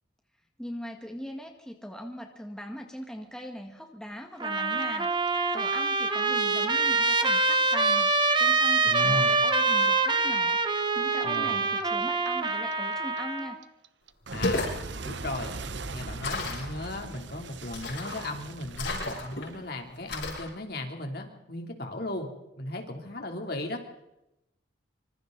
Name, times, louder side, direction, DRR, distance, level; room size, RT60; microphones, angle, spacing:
voice 1, 0.6-13.6, equal, 5° left, 2 dB, 1.7 m, -40 dB
Trumpet, 4.4-13.5, right 3 dB, 25° right, 1.4 m, -25 dB
Clock, 4.6-7.6 7.8-10.8 11.1-20.0, right 3 dB, 65° right, 1.0 m, -41 dB
voice 2, 8.8-9.4 11.2-11.6 14.3-15.5 15.9-22.3 22.6-23.8, left 1 dB, 55° left, 3 dB, 3.3 m, -36 dB
sound 1, 14.2-14.8 16.2-16.7 17.7-18.2 18.7-19.4 20.1-20.5, left 2 dB, 75° left, 7.7 m, -32 dB
26.0 x 25.5 x 4.1 m, 0.89 s
head